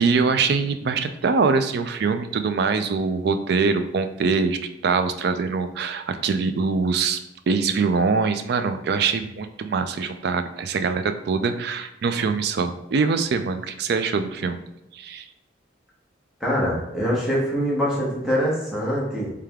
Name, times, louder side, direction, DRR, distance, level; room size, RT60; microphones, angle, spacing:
voice 1, 0.0-7.2 7.5-14.6 14.9-15.3, right 4 dB, 55° right, 9 dB, 0.3 m, -23 dB
voice 2, 16.4-19.3, equal, 5° right, -6 dB, 1.1 m, -24 dB
3.3 x 3.3 x 3.5 m, 0.92 s
head